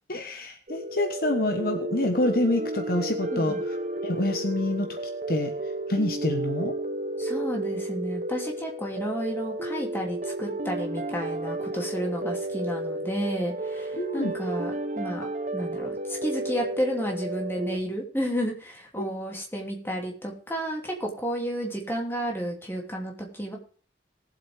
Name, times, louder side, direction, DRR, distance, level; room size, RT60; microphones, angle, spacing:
voice 1, 0.1-3.8 4.0-5.0 5.3-5.5 5.9-6.7 14.0-14.4 19.0-19.1, left 1 dB, 50° left, 5 dB, 1.2 m, -27 dB
sound 1, 0.7-17.8, right 1 dB, 40° right, 0.9 m, -32 dB
voice 2, 3.3-3.6 7.2-15.3 15.5-23.6, equal, 10° left, 0 dB, 2.7 m, -32 dB
19.0 x 7.8 x 3.5 m, 0.43 s
head